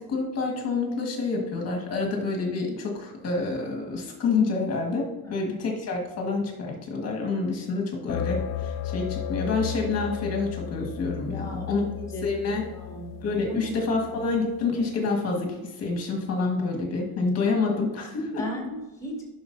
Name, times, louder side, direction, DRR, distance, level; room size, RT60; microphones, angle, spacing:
voice 1, 0.0-11.8 12.2-12.7 13.2-18.4, left 3 dB, 35° left, 1 dB, 1.6 m, -28 dB
sound 1, 8.1-14.6, left 8 dB, 80° left, 0.5 m, -34 dB
voice 2, 11.3-13.2 13.5-13.7 18.4-19.3, left 1 dB, 5° left, -2 dB, 2.2 m, -37 dB
10.5 x 6.2 x 2.7 m, 1.1 s
cardioid pair, 155°, 45 cm